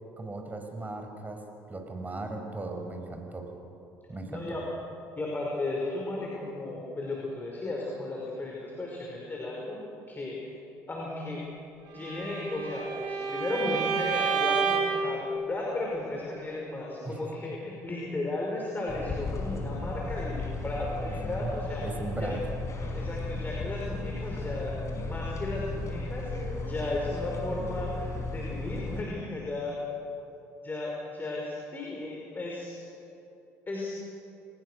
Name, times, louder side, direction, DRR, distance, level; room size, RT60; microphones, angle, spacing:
voice 1, 0.2-1.4 1.7-3.5 4.1-4.6 17.0-17.2 21.1-21.5 21.8-22.4, right 2 dB, 20° right, 4 dB, 5.0 m, -37 dB
voice 2, 4.3-4.6 5.2-9.8 10.1-10.4 10.9-11.4 11.9-21.8 22.2-22.4 22.9-29.8 30.6-32.8 33.7-34.0, left 2 dB, 25° left, -3 dB, 5.5 m, -35 dB
Bowed string instrument, 12.0-15.1, right 6 dB, 65° right, 5.9 m, -29 dB
sound 1, 18.9-29.0, left 2 dB, 40° left, 5.8 m, -35 dB
27.0 x 19.5 x 6.4 m, 2.9 s
hypercardioid pair, 65°, 7 cm